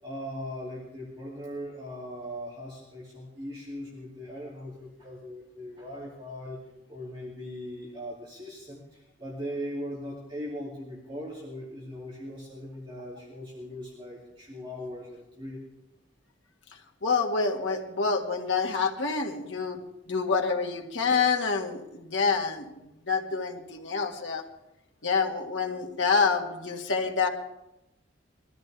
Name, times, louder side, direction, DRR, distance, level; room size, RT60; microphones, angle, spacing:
voice 1, 0.0-6.6 6.9-15.6, equal, 25° right, -5 dB, 2.6 m, -39 dB
voice 2, 17.0-19.8 20.1-22.7 23.1-24.4 25.0-27.3, left 5 dB, 80° left, 1 dB, 1.7 m, -27 dB
22.0 x 13.5 x 3.4 m, 0.89 s
head